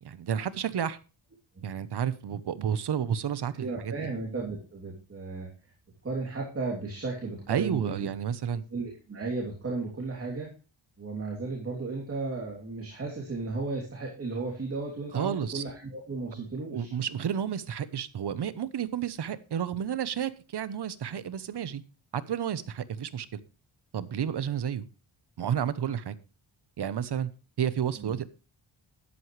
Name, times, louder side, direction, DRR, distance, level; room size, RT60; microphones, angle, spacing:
voice 1, 0.0-1.0 1.6-4.1 7.5-8.6 15.1-15.6 16.4-21.8 22.1-23.4 23.9-24.8 25.4-26.2 26.8-27.3 27.6-28.3, right 8 dB, 55° right, 15 dB, 1.1 m, -31 dB
voice 2, 3.6-5.5 6.0-8.1 8.7-10.5 11.0-16.9 28.0-28.1, right 3 dB, 30° right, -2 dB, 3.2 m, -34 dB
12.5 x 11.0 x 3.3 m, 0.33 s
wide cardioid pair, 135°, 48 cm